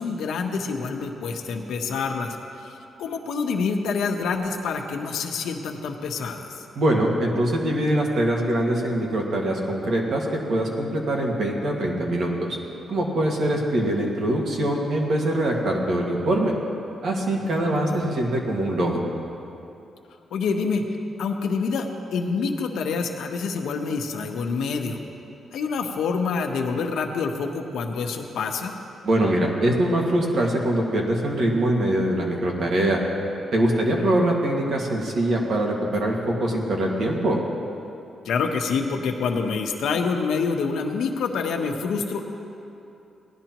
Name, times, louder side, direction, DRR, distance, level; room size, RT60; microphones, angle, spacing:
voice 1, 0.0-6.5 17.4-18.0 20.3-20.8 21.2-25.0 25.5-28.7 33.7-34.1 38.2-42.2, left 5 dB, 90° left, 3 dB, 0.9 m, -27 dB
voice 2, 6.8-12.6 12.9-16.5 17.0-19.0 29.0-33.0 33.5-37.4, right 1 dB, 60° right, -1 dB, 1.8 m, -23 dB
18.0 x 11.0 x 3.0 m, 2.8 s
cardioid pair, 130°, 0 cm